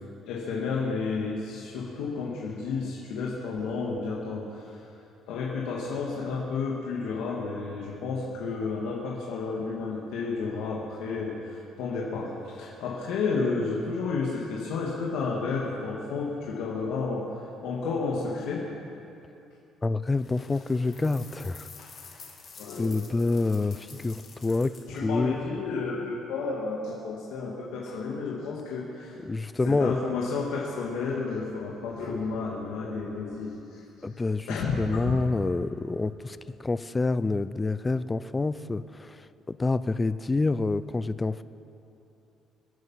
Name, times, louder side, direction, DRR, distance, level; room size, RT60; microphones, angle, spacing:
voice 1, 0.2-4.8 5.3-18.6 21.8-21.9 22.6-22.9 24.9-29.2 29.7-33.8 34.1-34.2 34.5-35.1, left 4 dB, 90° left, -4 dB, 2.1 m, -31 dB
voice 2, 19.8-21.7 22.8-24.7 25.0-25.4 29.2-30.0 34.0-41.4, left 3 dB, 15° left, 14 dB, 0.4 m, -27 dB
sound 1, 20.1-25.0, left 5 dB, 40° left, 2.7 m, -49 dB
25.0 x 9.4 x 5.7 m, 2.8 s
cardioid pair, 145°, 0 cm